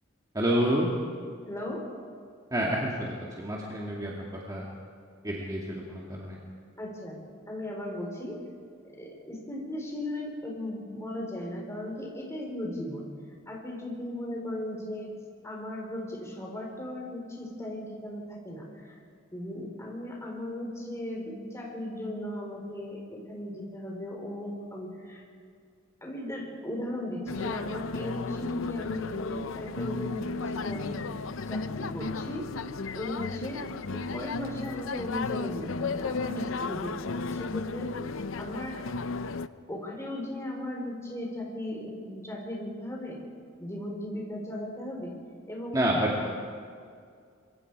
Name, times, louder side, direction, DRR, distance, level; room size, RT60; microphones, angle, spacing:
voice 1, 0.3-0.9 2.5-4.7 5.2-6.4 45.7-46.1, right 1 dB, 20° right, -4 dB, 2.3 m, -28 dB
voice 2, 1.5-1.8 6.8-8.4 8.8-13.1 13.5-15.1 15.4-19.0 19.3-25.2 26.0-31.2 31.5-32.5 32.9-37.9 38.4-38.8 39.7-43.2 43.6-45.2 45.5-45.8 46.2-46.3, left 1 dB, 15° left, -1 dB, 4.4 m, -37 dB
sound 1, 27.3-39.5, left 4 dB, 70° left, 0.6 m, -34 dB
26.5 x 23.5 x 4.8 m, 2.2 s
head